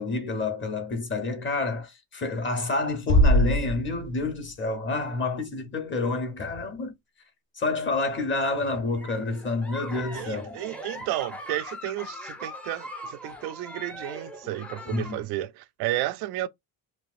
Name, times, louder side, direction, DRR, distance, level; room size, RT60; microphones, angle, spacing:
voice 1, 0.0-6.9 7.6-10.6 14.9-15.2, left 3 dB, 30° left, 1.1 m, -29 dB
Bass drum, 3.1-4.5, equal, 70° left, 1.2 m, -21 dB
Giggle, 8.5-15.2, equal, 5° left, 0.6 m, -41 dB
voice 2, 10.1-16.5, right 15 dB, 85° right, 0.5 m, -32 dB
3.3 x 2.9 x 2.5 m
cardioid pair, 125°, 37 cm